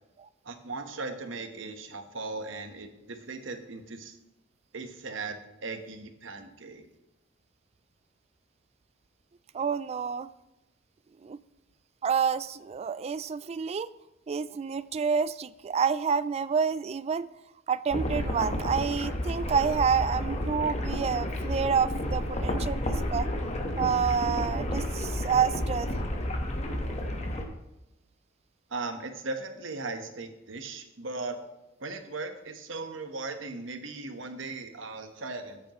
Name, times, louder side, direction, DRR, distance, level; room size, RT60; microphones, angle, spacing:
voice 1, 0.4-4.2 4.7-6.9 28.7-31.4 31.8-35.6, right 3 dB, 70° right, 6 dB, 1.2 m, -38 dB
voice 2, 9.5-10.3 11.2-11.4 12.0-13.9 14.3-17.3 17.7-23.3 23.8-25.9, right 6 dB, 30° right, 17 dB, 0.3 m, -28 dB
sound 1, 17.9-27.4, left 1 dB, 35° left, 1.2 m, -31 dB
14.0 x 8.1 x 3.0 m, 0.95 s
head